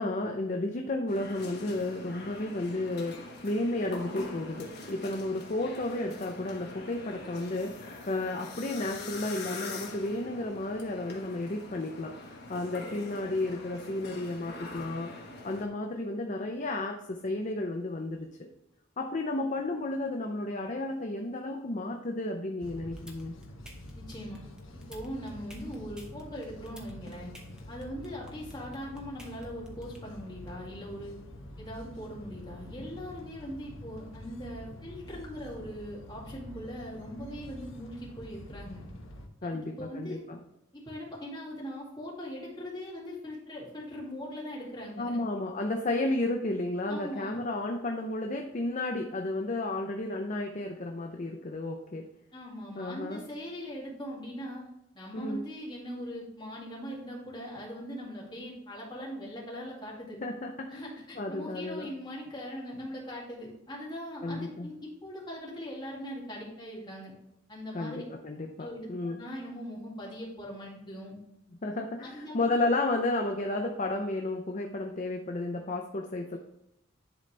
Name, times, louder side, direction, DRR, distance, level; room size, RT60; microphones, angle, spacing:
voice 1, 0.0-15.1 15.4-18.5 19.0-23.3 39.4-40.4 45.0-52.0 52.8-53.2 55.1-55.4 60.2-60.9 61.2-61.9 64.2-64.7 67.7-69.2 71.6-76.4, left 2 dB, 35° left, 2 dB, 0.6 m, -32 dB
sound 1, 1.1-15.7, left 3 dB, 50° left, 1.3 m, -44 dB
sound 2, 22.6-39.3, left 1 dB, 70° left, 0.9 m, -47 dB
sound 3, 23.0-30.0, equal, 5° right, 0.9 m, -50 dB
voice 2, 23.9-24.4 24.9-27.3 27.7-31.2 31.6-38.8 39.4-40.2 40.7-45.2 46.9-47.4 52.3-54.6 54.9-60.2 60.7-67.1 67.5-68.0 68.6-71.2 72.0-72.5, equal, 20° left, -4 dB, 2.1 m, -41 dB
10.5 x 4.0 x 3.3 m, 0.85 s
head